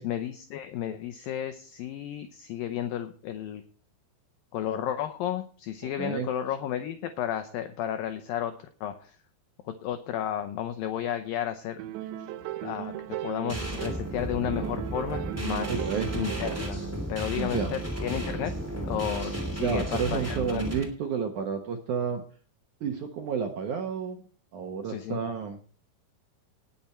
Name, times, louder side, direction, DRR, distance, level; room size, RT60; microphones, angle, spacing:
voice 1, 0.0-3.6 4.5-9.1 9.8-11.8 12.6-12.9 13.2-15.7 16.1-16.8 17.1-18.5 18.8-20.8 24.8-25.2, left 10 dB, 80° left, 8 dB, 2.1 m, -32 dB
voice 2, 5.8-6.3 15.7-16.1 17.3-17.8 19.6-22.2 22.8-24.2 24.5-25.6, right 6 dB, 70° right, 5 dB, 1.9 m, -31 dB
sound 1, 11.8-14.1 14.4-16.9, right 13 dB, 90° right, 3.2 m, -37 dB
sound 2, 13.5-20.8, right 1 dB, 5° right, 2.1 m, -33 dB
19.0 x 7.1 x 4.4 m, 0.41 s
omnidirectional pair, 5.0 m